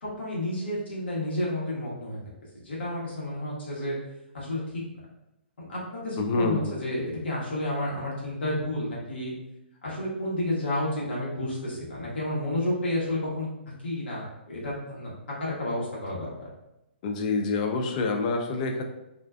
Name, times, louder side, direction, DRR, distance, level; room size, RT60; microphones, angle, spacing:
voice 1, 0.0-2.2 2.6-4.0 4.3-4.6 5.7-9.3 9.8-13.5 13.8-15.1 15.4-16.5, left 1 dB, 65° left, -6 dB, 1.1 m, -31 dB
voice 2, 6.2-6.7 17.0-18.8, left 3 dB, 40° left, 4 dB, 0.4 m, -27 dB
2.5 x 2.2 x 2.4 m, 0.90 s
figure-of-eight pair, 130°, 6 cm